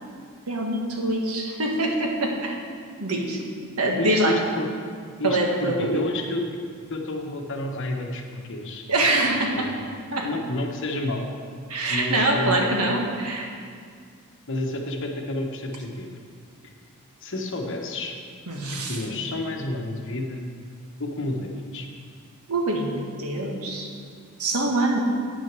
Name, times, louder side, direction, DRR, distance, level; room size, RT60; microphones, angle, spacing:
voice 1, 0.5-2.5 3.0-3.4 3.8-4.4 5.2-6.0 8.9-9.7 10.1-10.3 11.7-13.5 18.5-19.0 22.5-23.9 24.4-25.0, right 2 dB, 85° right, 1 dB, 1.4 m, -24 dB
voice 2, 4.0-4.7 5.2-6.4 6.9-8.8 9.5-9.7 10.2-11.3 11.9-12.6 14.5-16.1 17.2-18.1 18.7-20.4 21.0-21.9, left 2 dB, 60° left, 3 dB, 1.0 m, -30 dB
9.1 x 6.3 x 6.0 m, 2.1 s
head